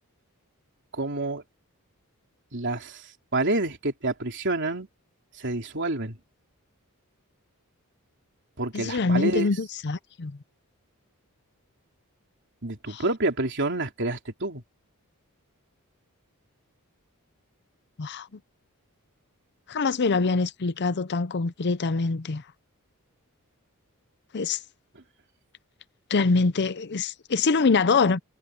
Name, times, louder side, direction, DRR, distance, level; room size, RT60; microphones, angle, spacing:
voice 1, 0.9-1.4 2.5-3.1 3.3-4.9 5.4-6.2 8.6-9.5 12.6-14.6, right 2 dB, 55° right, 3.7 m, -28 dB
voice 2, 8.7-10.4 12.9-13.0 18.0-18.3 19.7-22.4 24.3-24.6 26.1-28.2, left 4 dB, 50° left, 0.6 m, -24 dB
head